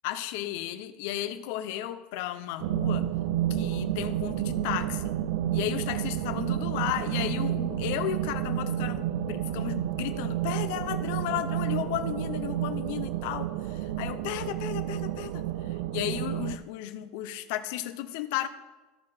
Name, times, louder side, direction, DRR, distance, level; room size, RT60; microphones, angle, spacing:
voice 1, 0.0-3.1 3.5-5.1 5.5-15.4 15.9-18.5, left 13 dB, 70° left, 11 dB, 0.6 m, -34 dB
sound 1, 2.6-16.6, right 12 dB, 75° right, 0.4 m, -30 dB
14.0 x 4.8 x 4.2 m, 1.2 s
supercardioid pair, 145°, 0 cm